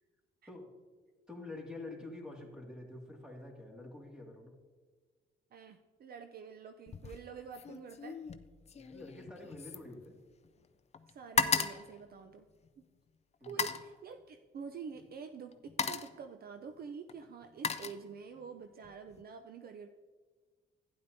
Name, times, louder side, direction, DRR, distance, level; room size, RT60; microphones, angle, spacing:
voice 1, 1.3-4.6 8.7-10.2 13.4-13.7, left 2 dB, 5° right, -1 dB, 2.1 m, -47 dB
voice 2, 5.5-8.2 11.1-12.4 13.5-19.9, right 6 dB, 50° right, 7 dB, 0.5 m, -47 dB
sound 1, 6.9-7.2 7.5-10.7 10.9-12.8 13.4-13.9 14.9-15.1 15.5-16.2 17.1-18.5 18.8-19.2, left 5 dB, 35° left, 0.5 m, -36 dB
12.0 x 9.7 x 2.7 m, 1.5 s
cardioid pair, 90°, 20 cm